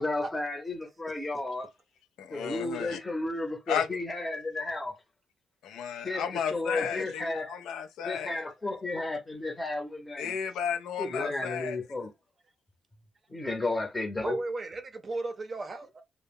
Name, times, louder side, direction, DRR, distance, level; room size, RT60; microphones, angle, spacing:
voice 1, 0.0-1.7 2.3-4.9 6.0-7.6 8.0-10.4 11.0-12.1 13.3-14.4, left 2 dB, 20° left, 0.7 m, -33 dB
voice 2, 2.2-3.0 3.7-4.0 5.6-8.4 10.2-11.8, left 7 dB, 80° left, 0.4 m, -33 dB
voice 3, 14.2-16.0, right 2 dB, 35° right, 0.5 m, -35 dB
2.1 x 2.0 x 3.4 m
cardioid pair, 90°, 0 cm